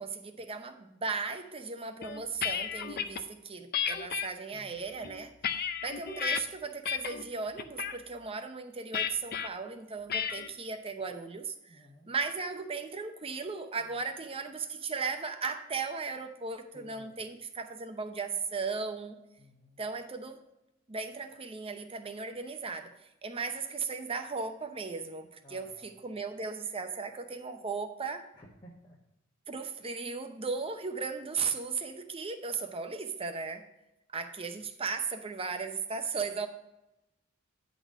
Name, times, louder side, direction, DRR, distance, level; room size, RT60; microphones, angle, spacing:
voice 1, 0.0-5.3 5.8-19.2 19.8-20.4 20.9-22.9 23.2-28.3 29.5-33.6 34.1-36.5, right 4 dB, 25° right, 7 dB, 0.7 m, -36 dB
sound 1, 2.0-3.2 3.7-4.3 4.9-6.4 6.8-7.2 7.6-8.0 8.9-9.5 10.1-10.5, left 7 dB, 50° left, 0.5 m, -33 dB
voice 2, 4.5-4.9 11.7-12.1 16.7-17.2 19.4-19.8 25.4-25.9 28.4-29.0, equal, 25° left, -6 dB, 1.3 m, -55 dB
9.6 x 4.1 x 6.2 m, 0.93 s
head